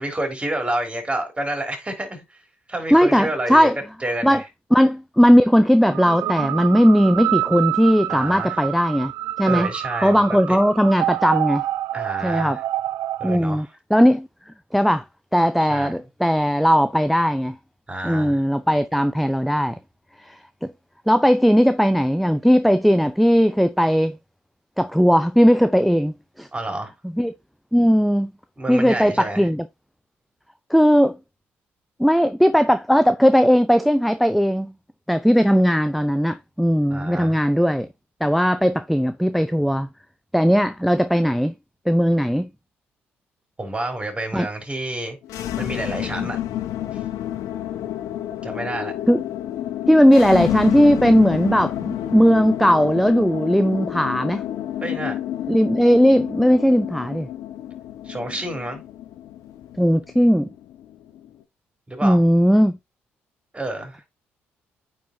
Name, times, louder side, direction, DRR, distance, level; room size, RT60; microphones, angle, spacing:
voice 1, 0.0-2.4 2.7-3.7 4.0-4.4 8.1-8.6 9.4-10.4 11.9-12.6 13.2-13.7 15.7-15.9 17.9-18.4 26.5-26.9 28.6-29.5 36.9-37.4 43.6-46.4 46.9-47.0 48.4-48.9 54.8-55.2 58.0-58.8 61.9-62.2 63.5-64.0, right 1 dB, 20° right, 3.9 m, -29 dB
voice 2, 2.9-3.8 4.2-4.4 4.7-9.1 9.4-9.7 10.0-11.7 12.2-12.6 13.2-14.3 14.7-15.0 15.3-17.6 18.0-19.8 20.2-20.7 21.1-24.2 24.8-26.5 27.2-27.3 27.7-28.3 28.7-29.6 30.7-31.2 32.0-34.7 35.1-37.9 38.2-39.9 40.3-41.5 41.9-42.5 44.3-44.5 49.1-49.2 49.9-54.4 55.5-57.3 59.8-60.5 62.0-62.8, equal, ahead, 0.6 m, -18 dB
sound 1, 5.8-13.4, right 14 dB, 65° right, 0.4 m, -27 dB
sound 2, 45.2-61.3, left 12 dB, 65° left, 0.8 m, -30 dB
9.2 x 4.4 x 2.8 m
hypercardioid pair, 50°, 6 cm